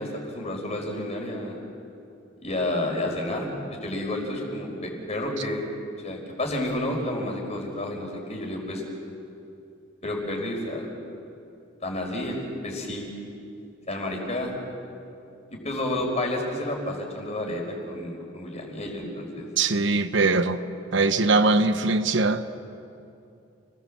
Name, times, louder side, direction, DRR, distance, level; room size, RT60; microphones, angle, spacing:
voice 1, 0.0-1.5 2.4-5.6 6.0-8.8 10.0-10.9 11.8-13.0 13.9-14.5 15.5-19.5, left 1 dB, 35° left, 1 dB, 5.1 m, -30 dB
voice 2, 19.6-20.6 20.9-22.4, right 3 dB, 65° right, 9 dB, 1.0 m, -21 dB
30.0 x 19.5 x 7.5 m, 2.7 s
head